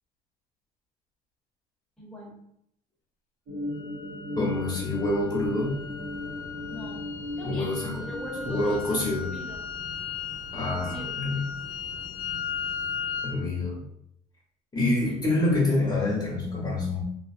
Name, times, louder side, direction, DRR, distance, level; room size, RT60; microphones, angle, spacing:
voice 1, 2.0-2.3 6.7-7.0 7.4-7.7 8.0-9.7 10.7-11.1 14.8-15.2, left 1 dB, ahead, -5 dB, 0.9 m, -40 dB
sound 1, 3.5-8.6, left 1 dB, 75° right, 1.3 m, -37 dB
sound 2, 3.7-13.4, left 7 dB, 85° left, 0.4 m, -37 dB
voice 2, 4.4-5.8 7.4-8.0 8.5-9.3 10.5-11.4 13.2-13.8 14.7-17.0, left 2 dB, 25° left, -4 dB, 0.9 m, -26 dB
sound 3, 4.5-13.3, left 1 dB, 40° right, 1.1 m, -47 dB
2.7 x 2.7 x 2.4 m, 0.73 s
cardioid pair, 110°, 17 cm